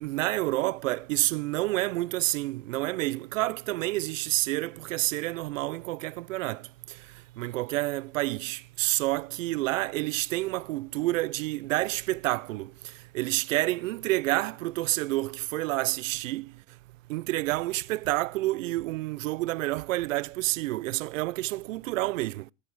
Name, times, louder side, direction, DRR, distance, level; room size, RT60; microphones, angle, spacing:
voice 1, 0.0-6.6 7.4-12.7 13.1-16.4 17.1-22.4, right 18 dB, 65° right, 0.6 m, -29 dB
20.0 x 7.5 x 4.6 m
hypercardioid pair, 135°, 42 cm